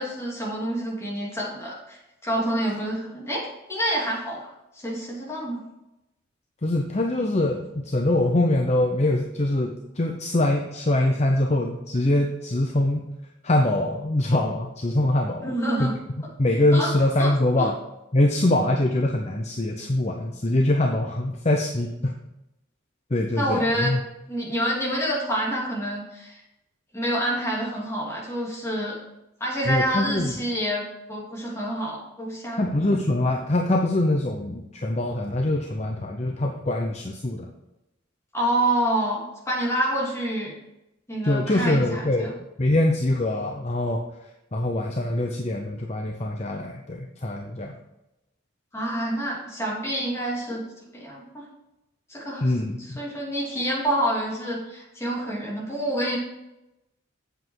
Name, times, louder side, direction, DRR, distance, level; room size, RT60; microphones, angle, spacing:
voice 1, 0.0-4.4 4.7-5.6 15.4-15.9 16.7-16.9 17.2-17.7 23.4-24.0 24.3-26.4 26.9-29.0 29.4-32.7 38.3-40.5 41.1-42.3 48.7-50.6 50.9-51.4 52.1-52.5 52.8-56.2, right 1 dB, 15° left, -4 dB, 2.8 m, -27 dB
voice 2, 6.6-13.1 13.4-15.5 15.8-15.9 16.4-17.7 18.1-22.1 23.1-24.0 29.7-30.3 32.5-37.5 41.2-44.0 44.5-47.7 52.4-53.0, left 1 dB, 35° left, 2 dB, 0.8 m, -23 dB
7.9 x 7.8 x 4.7 m, 0.92 s
head